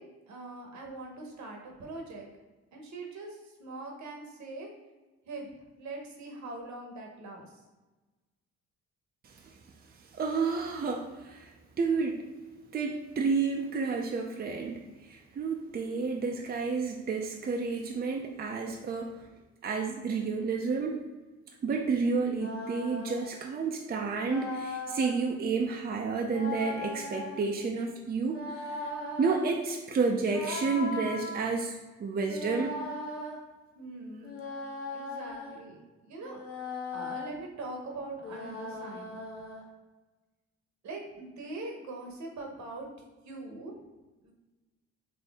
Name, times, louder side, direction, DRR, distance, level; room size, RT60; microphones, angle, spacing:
voice 1, 0.0-2.3 2.7-4.7 5.3-5.5 5.8-7.5 33.7-34.4 34.9-36.4 36.9-39.1 40.8-42.9 43.2-43.7 44.2-44.3, right 2 dB, 65° right, 1 dB, 1.0 m, -42 dB
voice 2, 10.1-11.5 11.8-12.2 12.7-19.2 19.6-21.0 21.6-28.9 29.2-32.8, right 4 dB, 30° right, 1 dB, 0.5 m, -30 dB
sound 1, 22.2-23.3 24.2-25.2 26.2-27.5 28.2-29.5 30.3-31.3 32.2-33.4 34.2-35.6 36.2-37.3 38.2-39.6, left 3 dB, 45° left, 1.1 m, -38 dB
4.3 x 2.7 x 3.4 m, 1.2 s
cardioid pair, 90°, 30 cm